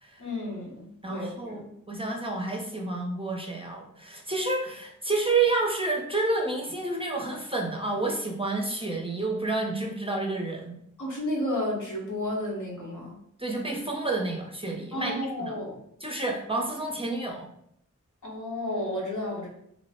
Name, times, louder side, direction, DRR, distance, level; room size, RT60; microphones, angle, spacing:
voice 1, 0.2-1.7 11.0-13.2 14.9-15.8 18.2-19.5, left 1 dB, 70° left, -3 dB, 1.2 m, -32 dB
voice 2, 1.0-1.6 1.9-10.8 13.4-15.5 16.0-17.5, right 3 dB, 20° right, 0 dB, 0.5 m, -29 dB
3.0 x 2.0 x 4.1 m, 0.72 s
wide cardioid pair, 85°, 31 cm